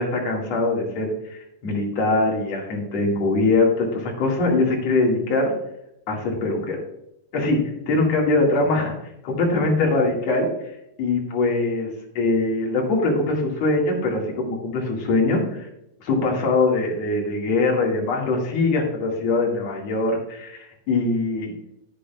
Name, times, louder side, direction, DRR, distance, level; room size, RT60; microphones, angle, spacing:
voice 1, 0.0-5.5 6.1-6.8 7.3-8.9 9.2-10.5 11.0-15.7 16.0-21.5, left 2 dB, 55° left, -1 dB, 2.9 m, -22 dB
10.0 x 9.9 x 2.4 m, 0.81 s
omnidirectional pair, 4.0 m